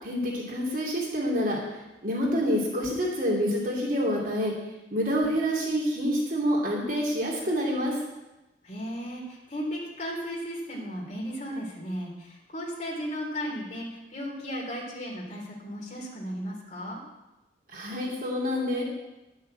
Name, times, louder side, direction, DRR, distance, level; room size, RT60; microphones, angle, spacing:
voice 1, 0.0-4.5 4.9-8.0 17.7-18.8, equal, 50° right, -3 dB, 2.9 m, -27 dB
voice 2, 8.6-17.0, equal, 40° left, -3 dB, 3.5 m, -35 dB
11.5 x 6.6 x 7.9 m, 1.0 s
head